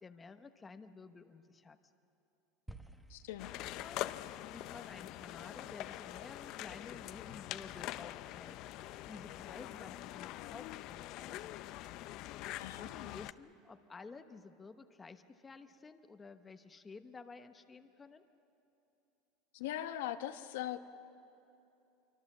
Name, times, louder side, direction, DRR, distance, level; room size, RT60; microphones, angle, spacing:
voice 1, 0.0-1.8 3.4-4.0 4.5-11.6 12.8-18.2, left 4 dB, 15° left, 8 dB, 0.9 m, -53 dB
sound 1, 2.7-7.0, right 1 dB, ahead, 1.4 m, -57 dB
voice 2, 3.1-3.5 12.6-13.3 19.5-20.8, left 12 dB, 85° left, 8 dB, 1.1 m, -41 dB
sound 2, 3.4-13.3, left 15 dB, 55° left, 0.6 m, -44 dB
26.0 x 24.5 x 7.4 m, 2.8 s
supercardioid pair, 140°, 0 cm